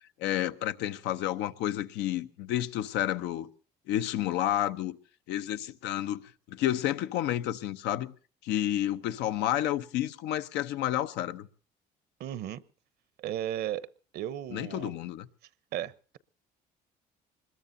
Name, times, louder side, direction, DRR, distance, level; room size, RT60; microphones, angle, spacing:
voice 1, 0.2-3.5 3.9-5.0 5.3-6.2 6.5-8.1 8.4-11.5 14.5-15.3, left 12 dB, 90° left, 0.8 m, -30 dB
voice 2, 12.2-12.6 13.2-13.9 14.1-14.9 15.7-16.2, right 11 dB, 70° right, 0.9 m, -35 dB
24.5 x 21.0 x 2.7 m
cardioid pair, 110°, 17 cm